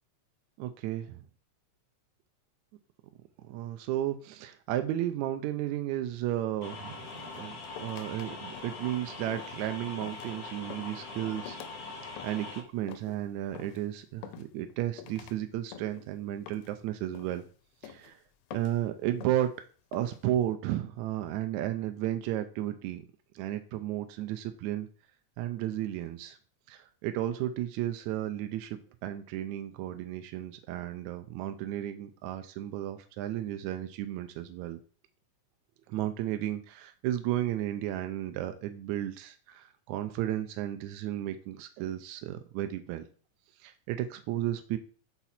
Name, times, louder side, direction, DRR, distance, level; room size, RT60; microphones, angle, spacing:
voice 1, 0.6-1.2 3.5-11.6 12.2-17.4 17.8-18.2 18.5-19.5 19.9-23.0 23.4-24.9 25.4-26.4 26.7-34.8 35.9-43.0 43.6-44.8, right 12 dB, 80° right, 8 dB, 1.9 m, -33 dB
sound 1, 6.6-12.6, left 3 dB, 55° left, 1.0 m, -42 dB
sound 2, 7.1-8.3 8.5-8.9 9.3-9.6 10.0-10.4 10.7-11.0 11.5-11.8 12.2-12.5 12.9-13.2 13.5-13.8 14.2-14.7 15.0-15.4 15.7-16.1 16.5-16.8 17.1-17.5 17.8-18.1 18.5-18.8 19.2-19.5 19.9-20.2, left 9 dB, 80° left, 1.6 m, -47 dB
5.8 x 4.1 x 4.2 m, 0.39 s
omnidirectional pair, 3.4 m